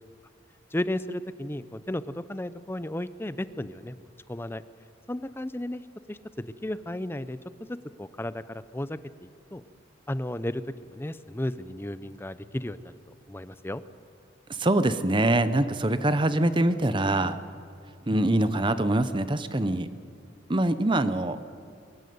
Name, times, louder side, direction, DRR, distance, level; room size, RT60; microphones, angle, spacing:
voice 1, 0.7-4.6 5.1-5.8 6.1-7.4 7.7-9.6 10.1-13.0 13.3-13.8, left 1 dB, 10° left, 14 dB, 0.6 m, -34 dB
voice 2, 14.5-17.4 18.1-19.9 20.5-21.4, right 1 dB, 25° right, 12 dB, 0.8 m, -24 dB
22.5 x 14.5 x 9.5 m, 2.3 s
head